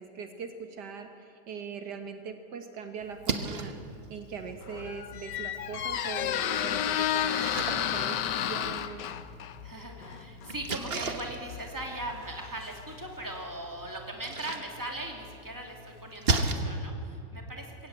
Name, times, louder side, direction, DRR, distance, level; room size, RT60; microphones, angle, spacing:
voice 1, 0.0-3.8 4.1-9.1, right 6 dB, 70° right, 6 dB, 1.7 m, -41 dB
Splash splatter, 3.0-16.5, right 4 dB, 40° right, 1.3 m, -38 dB
Squeak, 4.5-13.3, left 10 dB, 75° left, 1.4 m, -32 dB
voice 2, 9.6-17.9, right 1 dB, 10° right, 1 dB, 2.6 m, -39 dB
21.5 x 17.0 x 8.4 m, 2.5 s
omnidirectional pair, 1.9 m